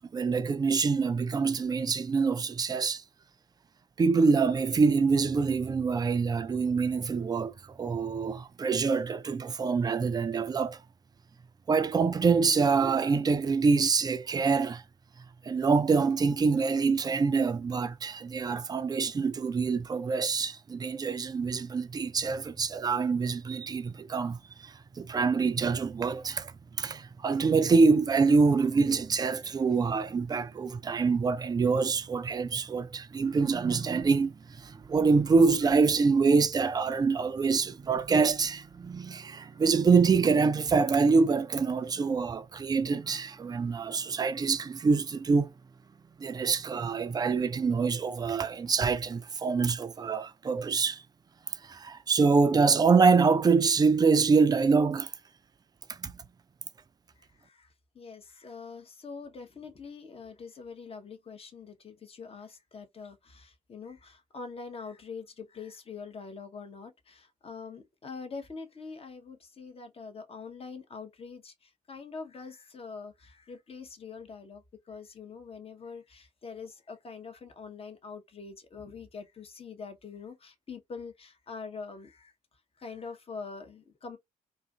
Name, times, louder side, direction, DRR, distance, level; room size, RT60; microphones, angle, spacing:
voice 1, 0.1-3.0 4.0-10.8 11.7-14.8 15.4-26.5 26.8-45.5 46.2-51.0 51.6-55.1 55.9-56.2, right 4 dB, 20° right, 0.4 m, -25 dB
voice 2, 57.4-82.3 82.8-84.2, left 5 dB, 30° left, 0.7 m, -44 dB
2.5 x 2.4 x 2.2 m
figure-of-eight pair, 40°, 19 cm